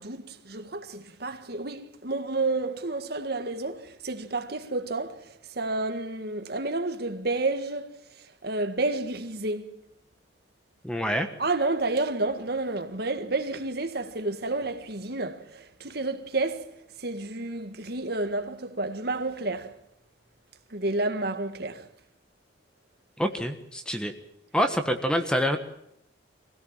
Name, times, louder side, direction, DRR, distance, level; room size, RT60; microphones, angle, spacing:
voice 1, 0.0-9.7 11.4-19.8 20.7-21.9, right 2 dB, 55° right, 1.7 m, -30 dB
voice 2, 10.8-11.3 23.2-24.1 24.5-25.6, equal, 5° left, 1.4 m, -26 dB
23.5 x 17.0 x 7.4 m
head